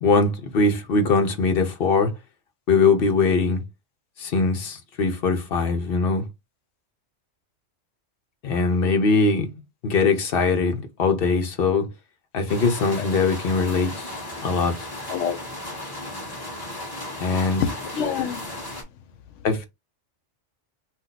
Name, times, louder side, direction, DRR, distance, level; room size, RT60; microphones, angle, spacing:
voice 1, 0.0-2.1 2.7-3.6 4.2-6.2 8.4-9.5 9.8-11.9 12.3-14.1 14.4-14.7 17.2-17.7 19.4-19.7, left 4 dB, 55° left, 0.9 m, -21 dB
sound 1, 12.5-18.8, left 1 dB, 20° left, 1.0 m, -35 dB
voice 2, 17.6-18.5 19.4-19.5, left 7 dB, 85° left, 0.9 m, -27 dB
2.6 x 2.2 x 3.9 m
omnidirectional pair, 1.2 m